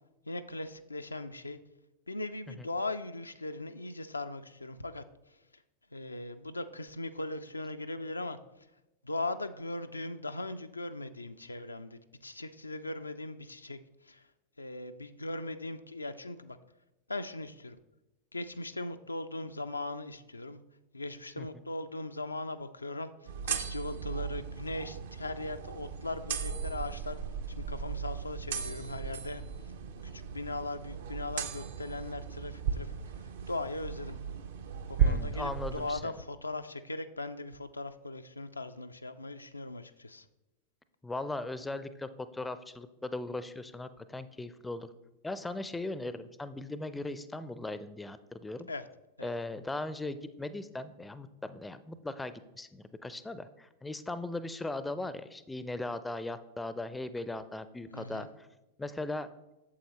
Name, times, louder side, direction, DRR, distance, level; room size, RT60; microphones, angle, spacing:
voice 1, 0.3-1.6 2.1-5.6 5.9-8.7 9.0-14.3 14.6-16.6 17.1-17.8 18.3-20.6 20.9-27.2 27.5-29.7 30.0-34.2 34.9-40.3 48.7-48.9 49.2-49.3 57.9-58.3, left 2 dB, 80° left, 9 dB, 0.3 m, -39 dB
sound 1, 23.3-36.0, right 7 dB, 60° right, 0.6 m, -36 dB
voice 2, 35.0-36.1 41.0-44.9 45.2-48.7 49.2-58.3 58.8-59.3, left 2 dB, 10° left, 13 dB, 0.4 m, -38 dB
8.4 x 7.2 x 2.9 m, 0.97 s
figure-of-eight pair, 90°, 0 cm